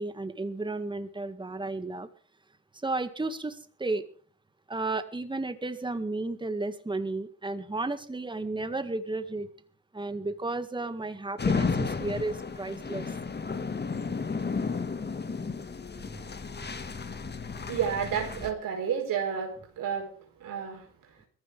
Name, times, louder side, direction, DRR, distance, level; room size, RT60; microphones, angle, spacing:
voice 1, 0.0-2.1 2.8-4.0 4.7-9.5 9.9-13.2 16.0-16.6, right 2 dB, 10° right, 2.0 m, -33 dB
sound 1, 11.4-18.5, left 5 dB, 25° left, 1.8 m, -33 dB
voice 2, 17.5-21.2, right 7 dB, 55° right, 4.8 m, -31 dB
21.5 x 14.5 x 3.5 m
hypercardioid pair, 55°, 38 cm